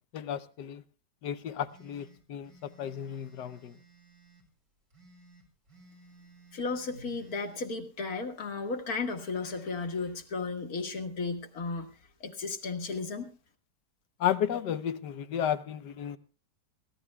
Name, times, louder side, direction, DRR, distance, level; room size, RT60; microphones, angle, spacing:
voice 1, 0.1-0.8 1.2-3.8 14.2-16.2, left 9 dB, 75° left, 1.4 m, -33 dB
sound 1, 1.7-4.5 4.9-7.7, right 3 dB, 55° right, 4.1 m, -58 dB
voice 2, 6.5-11.9 12.2-13.3, left 4 dB, 55° left, 2.2 m, -34 dB
24.5 x 16.5 x 2.3 m
omnidirectional pair, 1.9 m